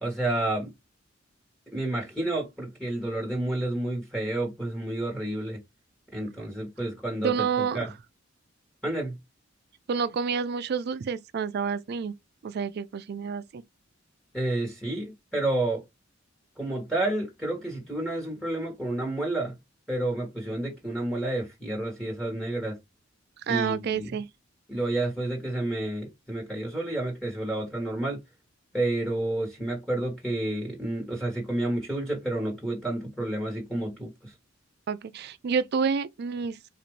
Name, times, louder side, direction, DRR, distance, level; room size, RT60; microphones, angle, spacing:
voice 1, 0.0-0.7 1.7-5.6 6.1-7.9 8.8-9.1 14.3-15.8 16.6-19.6 19.9-22.8 23.5-24.1 24.7-28.2 28.7-34.3, right 1 dB, 5° left, 1.3 m, -30 dB
voice 2, 7.2-7.9 9.9-12.1 12.4-13.6 23.5-24.3 34.9-36.6, right 6 dB, 55° right, 0.4 m, -29 dB
4.0 x 2.5 x 3.0 m
head